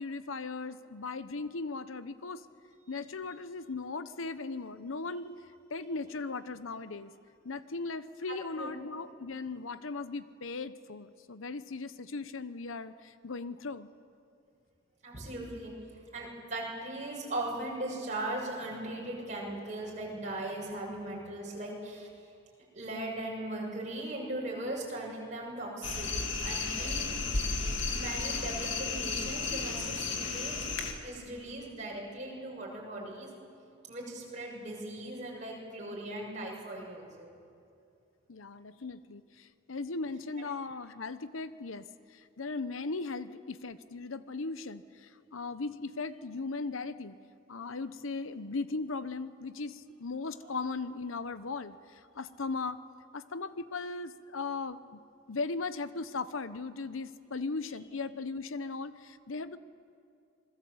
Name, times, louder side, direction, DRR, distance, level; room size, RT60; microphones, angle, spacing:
voice 1, 0.0-2.4 2.9-5.3 5.7-7.1 7.4-13.9 38.3-47.1 47.5-52.8 53.1-55.0 55.3-59.6, left 3 dB, 85° left, 13 dB, 0.9 m, -38 dB
voice 2, 15.0-15.7 16.1-22.1 22.7-26.1 26.4-27.1 27.9-30.6 30.9-33.3 33.9-37.3, right 1 dB, 35° right, -2 dB, 6.9 m, -38 dB
sound 1, 25.8-30.9, left 4 dB, 70° left, 2.5 m, -33 dB
27.0 x 21.0 x 7.9 m, 2.5 s
head